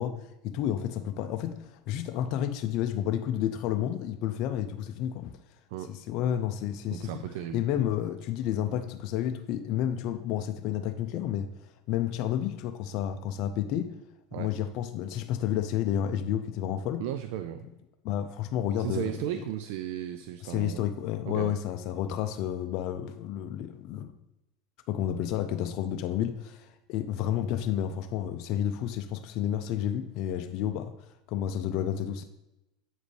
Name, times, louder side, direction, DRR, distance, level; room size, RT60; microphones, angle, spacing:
voice 1, 0.0-5.4 5.9-7.2 7.5-11.5 11.9-13.9 14.3-17.0 18.0-19.5 20.4-24.1 24.9-32.2, left 10 dB, 60° left, 7 dB, 0.5 m, -31 dB
voice 2, 6.9-7.6 14.3-14.5 17.0-17.7 18.8-20.9 21.3-21.5, right 11 dB, 75° right, 10 dB, 0.3 m, -35 dB
7.7 x 5.1 x 3.2 m, 0.92 s
supercardioid pair, 110°, 0 cm